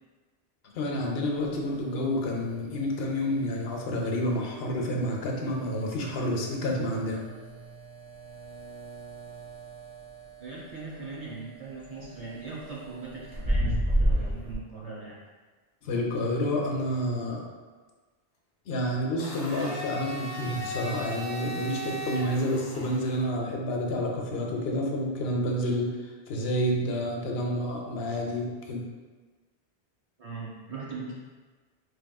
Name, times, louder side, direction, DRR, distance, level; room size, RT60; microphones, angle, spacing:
voice 1, 0.6-7.3 15.8-17.4 18.7-25.9 26.3-28.8, equal, 75° left, 0 dB, 0.8 m, -29 dB
sound 1, 1.3-14.5, equal, 10° right, 1.1 m, -35 dB
voice 2, 10.4-15.2 30.2-31.1, right 4 dB, 40° right, -6 dB, 0.8 m, -40 dB
Domestic sounds home sounds, 19.2-23.2, right 1 dB, 40° left, 0.7 m, -37 dB
4.6 x 3.2 x 2.2 m, 1.4 s
omnidirectional pair, 1.1 m